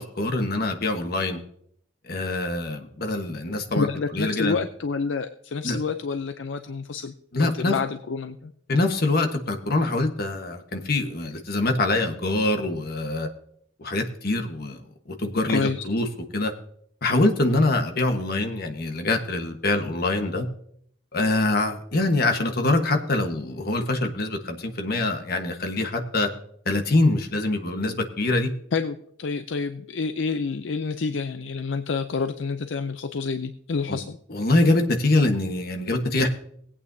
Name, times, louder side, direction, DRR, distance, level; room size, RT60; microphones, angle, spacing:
voice 1, 0.0-1.4 2.0-3.9 4.1-4.6 5.6-5.8 7.3-7.7 8.7-13.3 13.8-14.8 15.1-16.1 16.3-16.5 17.0-20.5 21.1-26.3 26.6-28.5 33.9-34.0 34.3-36.3, left 2 dB, 50° left, 5 dB, 1.3 m, -24 dB
voice 2, 3.7-7.1 7.4-8.5 15.5-15.8 28.7-34.2, left 4 dB, 75° left, 9 dB, 0.5 m, -28 dB
19.5 x 8.6 x 2.7 m, 0.67 s
head